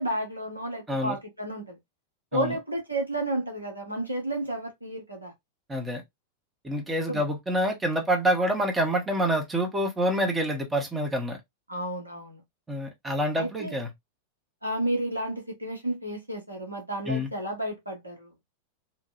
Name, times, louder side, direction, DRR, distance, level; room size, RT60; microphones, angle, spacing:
voice 1, 0.0-1.8 2.3-5.3 7.1-7.2 11.7-12.4 13.4-13.7 14.6-18.3, right 1 dB, 85° right, 1.1 m, -32 dB
voice 2, 5.7-6.0 6.6-11.4 12.7-13.9 17.1-17.3, equal, 15° right, 1.1 m, -27 dB
3.2 x 2.5 x 2.5 m
figure-of-eight pair, 90°, 0 cm